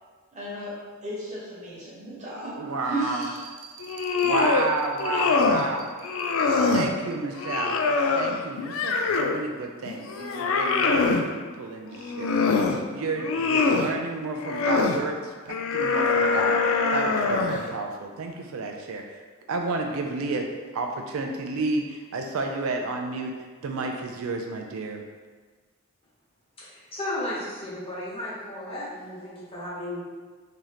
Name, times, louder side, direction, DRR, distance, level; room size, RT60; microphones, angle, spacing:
voice 1, 0.3-0.7 1.0-2.5 2.9-3.4, right 2 dB, 35° right, -7 dB, 1.1 m, -34 dB
voice 2, 2.4-5.9 6.7-7.8 8.1-12.3 12.9-19.2 19.5-20.5 20.7-23.3 23.6-25.0, right 3 dB, 75° right, 3 dB, 0.4 m, -31 dB
sound 1, 3.8-4.7 5.0-5.7 6.0-6.9 7.4-9.4 9.9-11.3 11.9-12.8 13.2-13.9 14.4-15.0 15.5-17.7, left 4 dB, 70° left, 0.3 m, -24 dB
voice 3, 26.6-30.0, left 1 dB, 25° left, -8 dB, 1.0 m, -34 dB
3.1 x 2.8 x 3.8 m, 1.4 s
head